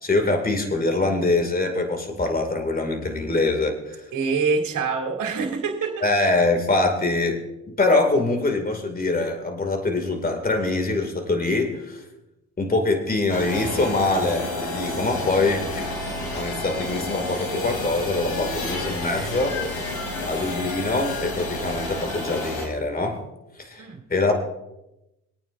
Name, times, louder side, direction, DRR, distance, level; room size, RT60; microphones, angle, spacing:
voice 1, 0.0-4.0 6.0-7.4 7.8-12.0 12.6-15.9 16.3-19.6 20.2-23.2 23.6-23.8 24.1-24.3, left 2 dB, 25° left, 5 dB, 2.5 m, -24 dB
voice 2, 4.1-6.1 23.8-24.0, right 4 dB, 60° right, 2 dB, 2.7 m, -25 dB
sound 1, 13.3-22.7, left 2 dB, 85° left, 4.0 m, -30 dB
24.5 x 9.1 x 2.7 m, 0.90 s
supercardioid pair, 70°, 35 cm